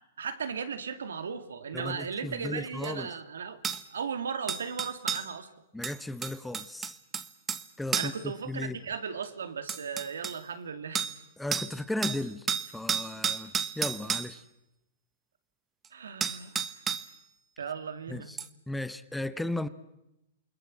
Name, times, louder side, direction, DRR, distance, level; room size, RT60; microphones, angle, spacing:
voice 1, 0.2-3.6 3.9-5.5 7.9-11.1 15.9-16.7 17.6-18.3, right 6 dB, 85° right, 10 dB, 2.3 m, -36 dB
voice 2, 1.7-3.1 5.7-7.0 7.8-8.8 11.4-12.5 12.7-14.4 18.1-18.4 18.7-19.7, left 1 dB, 5° left, 15 dB, 0.9 m, -35 dB
sound 1, 2.8-2.9 3.6-3.8 4.5-5.3 5.8-7.7 7.9-8.2 9.2-9.3 9.7-10.4 11.0-11.2 11.5-11.7 12.0-14.3 15.8-15.9 16.2-17.1 18.4-18.5, right 7 dB, 20° right, 1.2 m, -32 dB
28.5 x 20.5 x 7.5 m, 0.89 s
hypercardioid pair, 130°, 0 cm